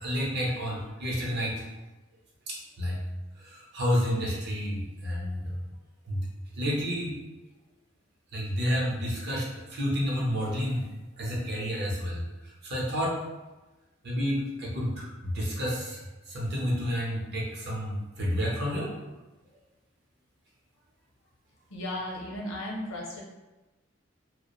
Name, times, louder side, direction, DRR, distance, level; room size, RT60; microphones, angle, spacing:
voice 1, 0.0-1.6 2.5-3.0 3.4-5.5 6.1-6.3 6.6-7.2 8.3-10.9 11.2-12.2 12.6-13.2 14.0-18.9, equal, 55° right, -4 dB, 0.7 m, -30 dB
voice 2, 21.7-23.2, left 1 dB, 75° left, -2 dB, 0.6 m, -35 dB
2.4 x 2.1 x 2.9 m, 1.1 s
head